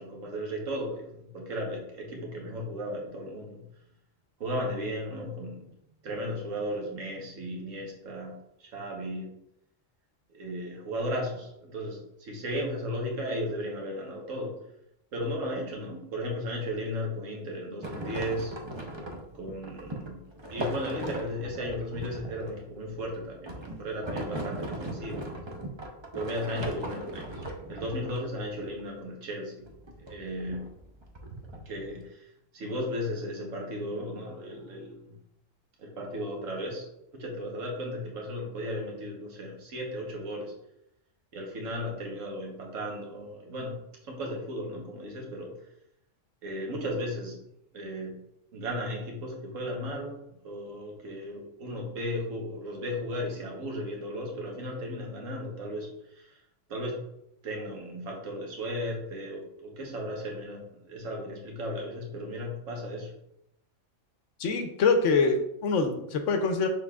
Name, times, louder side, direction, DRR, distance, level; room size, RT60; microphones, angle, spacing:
voice 1, 0.0-3.6 4.4-5.7 6.0-9.3 10.3-14.6 15.1-18.5 19.3-20.2 20.5-25.2 26.1-27.4 27.7-29.7 30.0-30.7 31.6-35.2 35.8-40.5 41.3-45.5 46.4-47.4 47.7-48.2 48.5-50.2 50.4-56.4 56.7-57.0 57.4-63.1, equal, 75° right, 0 dB, 1.4 m, -35 dB
sound 1, 17.8-28.8 29.7-32.0, right 1 dB, 35° right, 0.4 m, -38 dB
voice 2, 64.4-66.7, left 4 dB, 75° left, 6 dB, 0.9 m, -25 dB
6.1 x 3.6 x 2.3 m, 0.79 s
omnidirectional pair, 1.3 m